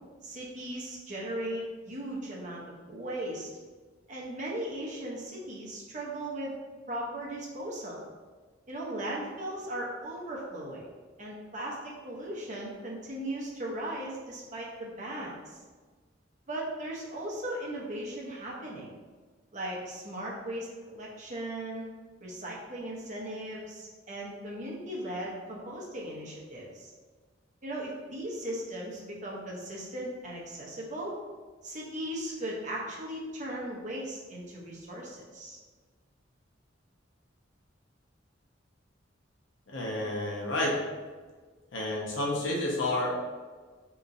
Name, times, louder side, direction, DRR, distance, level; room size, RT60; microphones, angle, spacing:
voice 1, 0.2-3.5 4.1-6.5 6.9-8.0 8.7-10.9 11.2-15.6 16.5-18.9 19.5-21.9 22.2-26.9 27.6-31.1 31.6-35.6, right 1 dB, 40° right, -3 dB, 0.8 m, -37 dB
voice 2, 39.7-40.7 41.7-43.3, left 1 dB, 80° left, -2 dB, 0.8 m, -30 dB
3.8 x 2.9 x 2.6 m, 1.4 s
head